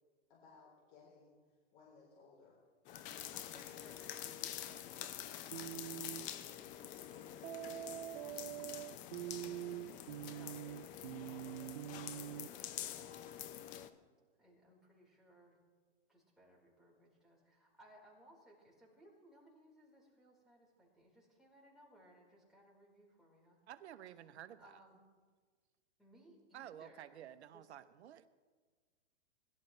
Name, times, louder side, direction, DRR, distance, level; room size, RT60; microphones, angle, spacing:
voice 1, 0.3-2.6, left 4 dB, 45° left, -4 dB, 3.8 m, -62 dB
sound 1, 2.8-13.9, left 11 dB, 20° left, 0.5 m, -47 dB
voice 2, 3.3-6.8 7.0-7.7 8.1-13.4 14.4-15.6 16.1-23.6 24.2-25.1 26.0-27.7, equal, ahead, -5 dB, 4.5 m, -65 dB
sound 2, 5.5-6.3 7.4-12.5, right 15 dB, 50° right, 0.5 m, -45 dB
voice 3, 23.7-24.8 26.5-28.3, right 10 dB, 65° right, 12 dB, 0.9 m, -52 dB
21.5 x 12.0 x 3.3 m, 1.5 s
hypercardioid pair, 130°, 36 cm